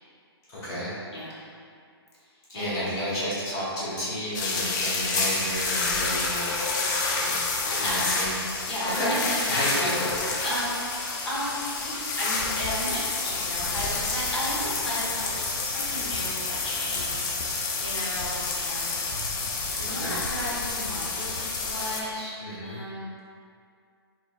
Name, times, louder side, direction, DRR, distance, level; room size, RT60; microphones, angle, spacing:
voice 1, 0.5-0.9 2.5-6.6 7.1-7.4 7.7-8.3 8.9-9.1 9.5-10.1 19.9-20.2 22.4-22.8, equal, 20° left, -10 dB, 1.5 m, -31 dB
voice 2, 1.1-1.4 2.5-2.8 7.5-8.1 8.6-10.0 10.3-11.5 11.8-18.9 19.8-23.1, equal, 80° left, -7 dB, 1.3 m, -34 dB
sound 1, 4.3-22.0, left 3 dB, 45° left, 0.5 m, -29 dB
4.1 x 3.6 x 2.4 m, 2.3 s
hypercardioid pair, 135°, 14 cm